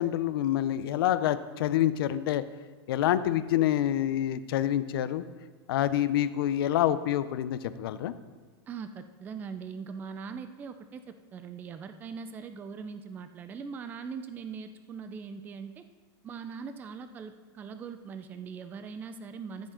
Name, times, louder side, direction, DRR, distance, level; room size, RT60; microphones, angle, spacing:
voice 1, 0.0-2.4 2.9-5.2 5.7-8.1, left 12 dB, 65° left, 13 dB, 0.6 m, -27 dB
voice 2, 8.7-15.8 16.2-19.7, right 6 dB, 15° right, 9 dB, 0.4 m, -41 dB
14.0 x 7.3 x 3.8 m, 1.4 s
supercardioid pair, 160°, 13 cm